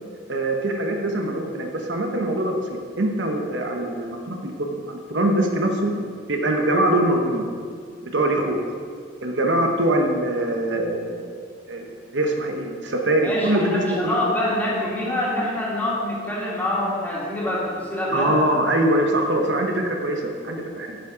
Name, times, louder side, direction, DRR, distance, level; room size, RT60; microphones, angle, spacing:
voice 1, 0.3-5.9 6.3-7.5 8.0-8.6 9.2-11.3 11.7-14.2 18.1-21.0, right 1 dB, 70° right, 2 dB, 1.0 m, -23 dB
voice 2, 13.2-18.3, left 1 dB, 10° left, -6 dB, 2.1 m, -25 dB
8.8 x 7.2 x 4.9 m, 2.1 s
head